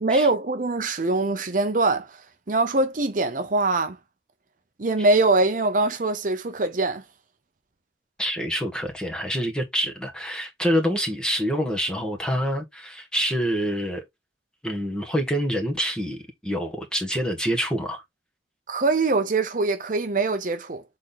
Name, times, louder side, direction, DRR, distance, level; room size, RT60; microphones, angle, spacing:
voice 1, 0.0-2.2 2.5-4.0 4.8-7.0 18.7-20.8, right 3 dB, 45° right, 0.7 m, -23 dB
voice 2, 8.2-14.0 14.6-16.2 16.4-18.0, equal, 5° left, 1.5 m, -26 dB
7.3 x 4.2 x 4.0 m
head